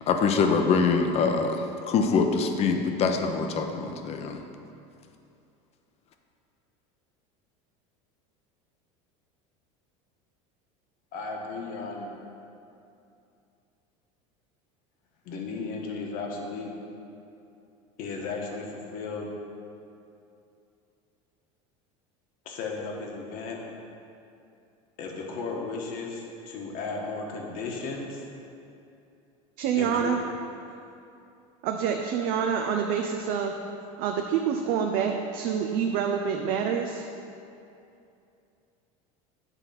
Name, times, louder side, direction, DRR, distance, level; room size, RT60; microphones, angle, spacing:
voice 1, 0.1-4.4, left 5 dB, 40° left, 5 dB, 0.7 m, -24 dB
voice 2, 11.1-12.1 15.2-16.7 18.0-19.3 22.4-23.6 25.0-28.2 29.7-30.1, left 4 dB, 55° left, 0 dB, 1.3 m, -35 dB
voice 3, 29.6-30.2 31.6-33.6 34.0-37.1, right 7 dB, 60° right, 3 dB, 0.5 m, -27 dB
8.2 x 4.0 x 5.7 m, 2.7 s
supercardioid pair, 120°, 17 cm